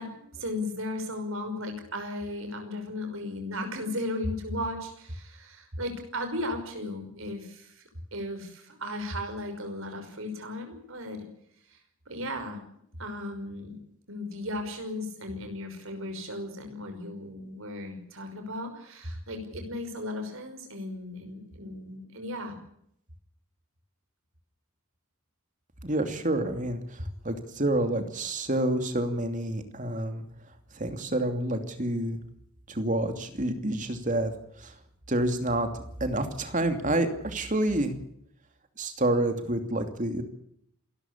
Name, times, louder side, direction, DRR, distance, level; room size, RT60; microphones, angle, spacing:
voice 1, 0.0-7.8 8.1-11.3 11.7-11.8 12.1-12.6 13.0-13.8 14.1-22.5, left 1 dB, 70° right, 5 dB, 5.8 m, -36 dB
voice 2, 25.8-30.2 30.7-32.2 32.7-34.3 34.6-34.7 35.1-37.9 38.8-40.2, right 1 dB, 35° right, 7 dB, 2.8 m, -28 dB
27.5 x 13.5 x 8.6 m, 0.70 s
head